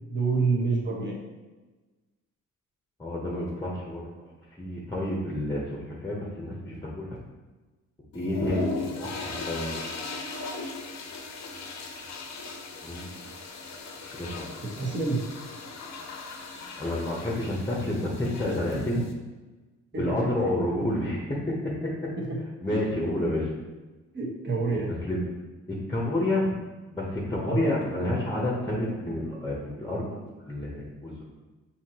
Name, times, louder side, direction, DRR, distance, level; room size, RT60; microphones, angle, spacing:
voice 1, 0.1-1.2 14.8-15.2 19.9-20.2 22.3-22.4 22.7-22.8 24.1-24.9 27.4-27.6, right 4 dB, 40° right, -3 dB, 1.3 m, -27 dB
voice 2, 3.0-4.3 4.6-7.2 8.1-9.9 12.8-13.2 14.0-14.5 16.8-19.0 19.9-21.9 22.6-23.5 25.0-25.3 25.7-26.5 26.9-31.2, left 1 dB, 10° left, -3 dB, 0.9 m, -30 dB
sound 1, 8.1-19.1, left 3 dB, 60° left, 0.7 m, -37 dB
5.7 x 2.8 x 2.9 m, 1.2 s
cardioid pair, 90°, 30 cm